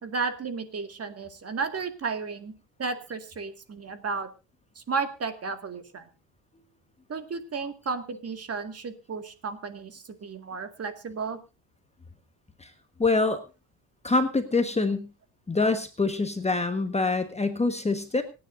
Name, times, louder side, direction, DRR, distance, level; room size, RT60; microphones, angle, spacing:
voice 1, 0.0-2.5 2.8-4.3 4.8-6.1 7.1-11.4, right 4 dB, 30° right, 8 dB, 2.0 m, -33 dB
voice 2, 13.0-13.4 14.0-15.1 15.5-18.2, left 3 dB, 15° left, 7 dB, 1.3 m, -25 dB
26.0 x 9.6 x 2.6 m, 0.29 s
cardioid pair, 120°, 45 cm